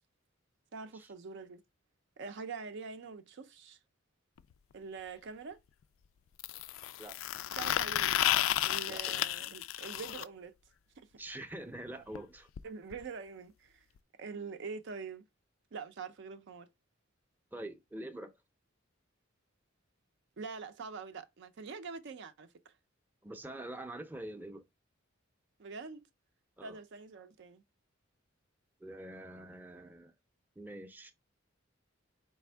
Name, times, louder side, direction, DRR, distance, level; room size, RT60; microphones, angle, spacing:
voice 1, 0.7-1.6 2.2-3.8 4.7-5.6 7.6-8.2 8.6-10.5 11.0-11.1 12.6-13.9 14.2-15.3 15.7-16.7 20.4-22.7 25.6-26.0 26.6-27.6, right 5 dB, 65° right, 0.5 m, -44 dB
sound 1, 4.4-4.5 6.4-10.2 12.2-12.3 12.6-12.7 12.9-13.0 14.0-14.1, left 12 dB, 80° left, 0.3 m, -32 dB
voice 2, 11.2-12.5 17.5-18.3 23.2-24.6 26.6-26.8 28.8-30.1 30.6-31.1, right 1 dB, 10° right, 0.5 m, -45 dB
4.2 x 3.4 x 3.3 m
head